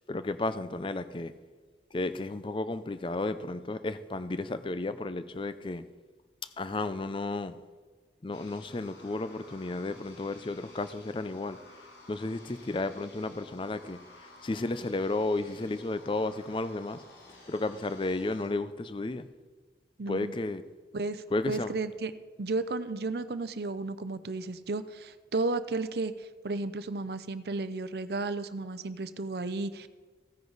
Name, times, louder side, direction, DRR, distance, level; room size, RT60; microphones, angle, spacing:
voice 1, 0.1-1.3 1.9-5.8 6.6-7.6 8.2-11.6 12.1-14.0 14.4-17.0 17.5-19.3 20.1-20.6 21.3-21.7, left 2 dB, 30° left, 0.4 m, -33 dB
sound 1, 8.3-18.5, left 2 dB, 85° left, 2.8 m, -53 dB
voice 2, 20.0-20.3 20.9-29.9, right 3 dB, 65° right, 0.6 m, -33 dB
15.5 x 9.7 x 4.0 m
head